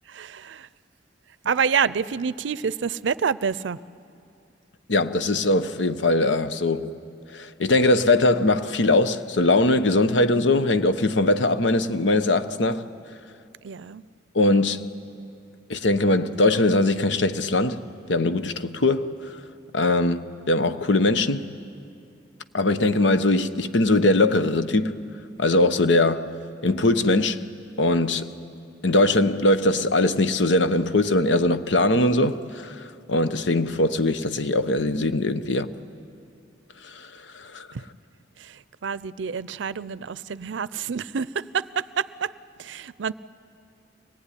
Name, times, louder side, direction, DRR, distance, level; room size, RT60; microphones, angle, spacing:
voice 1, 0.1-0.7 1.5-3.8 13.6-14.0 37.7-37.8 38.4-42.3 42.6-43.1, right 6 dB, 85° right, 0.5 m, -28 dB
voice 2, 4.9-6.9 7.3-12.8 14.3-14.9 15.7-17.8 18.1-19.3 19.7-21.5 22.5-25.0 25.4-26.3 26.6-27.5 27.8-28.3 28.8-35.7 37.0-37.1 37.3-37.7, left 2 dB, 85° left, 0.9 m, -21 dB
24.5 x 18.5 x 10.0 m
head